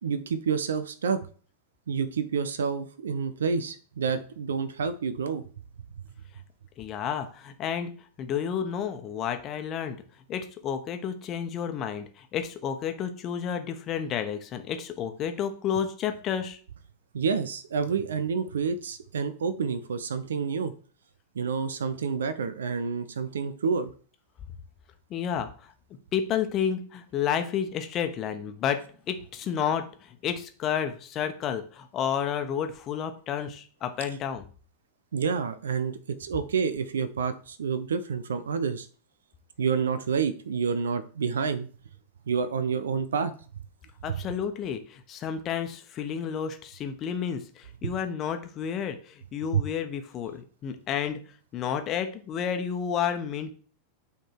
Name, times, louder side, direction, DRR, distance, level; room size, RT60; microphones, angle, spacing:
voice 1, 0.0-1.2 1.9-5.4 17.1-20.7 21.3-23.9 35.1-38.9 39.6-41.7 42.3-43.3 44.1-44.2 47.8-47.9 49.5-49.6, right 6 dB, 65° right, 13 dB, 0.5 m, -28 dB
voice 2, 6.8-10.0 10.3-16.6 25.1-25.7 26.1-34.5 44.0-51.3 51.5-53.5, left 8 dB, 30° left, 7 dB, 1.0 m, -31 dB
9.0 x 3.7 x 4.6 m, 0.41 s
figure-of-eight pair, 90°, 0 cm